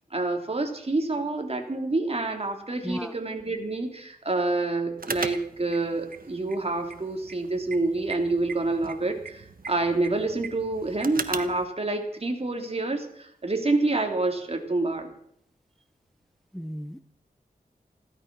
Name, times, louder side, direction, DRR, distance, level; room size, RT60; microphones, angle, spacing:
voice 1, 0.1-15.1, right 2 dB, 40° right, 3 dB, 3.1 m, -27 dB
voice 2, 2.8-3.1 16.5-17.0, equal, ahead, 9 dB, 0.8 m, -34 dB
sound 1, 5.0-11.6, right 5 dB, 65° right, 1.2 m, -39 dB
16.0 x 12.5 x 6.2 m, 0.67 s
wide cardioid pair, 70°, 16 cm